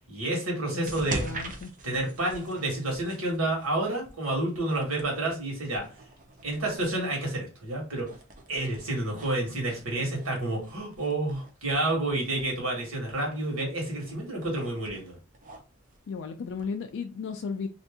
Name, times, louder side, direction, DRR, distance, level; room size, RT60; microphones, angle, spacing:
voice 1, 0.1-1.3 1.8-5.9 6.4-8.1 8.5-15.2, right 2 dB, 75° right, 0 dB, 1.5 m, -29 dB
voice 2, 0.7-1.7 16.1-17.7, left 5 dB, 60° left, 5 dB, 0.3 m, -35 dB
sound 1, 0.8-16.7, right 2 dB, 40° right, 0.6 m, -44 dB
2.7 x 2.5 x 3.5 m, 0.31 s
head